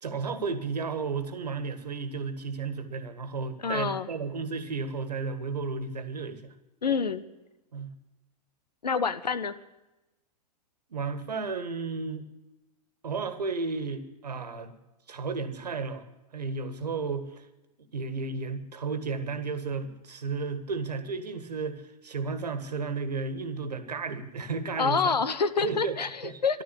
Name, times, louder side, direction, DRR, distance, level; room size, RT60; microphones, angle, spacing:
voice 1, 0.0-6.5 7.7-8.0 10.9-12.2 13.0-14.7 15.1-16.1 16.3-17.5 17.9-25.2 25.6-26.0 26.2-26.6, right 4 dB, 75° right, 11 dB, 1.7 m, -33 dB
voice 2, 3.6-4.1 6.8-7.2 8.8-9.5 24.8-26.1 26.4-26.6, left 5 dB, 75° left, 14 dB, 1.1 m, -27 dB
13.5 x 12.0 x 8.2 m, 1.0 s
figure-of-eight pair, 95°, 21 cm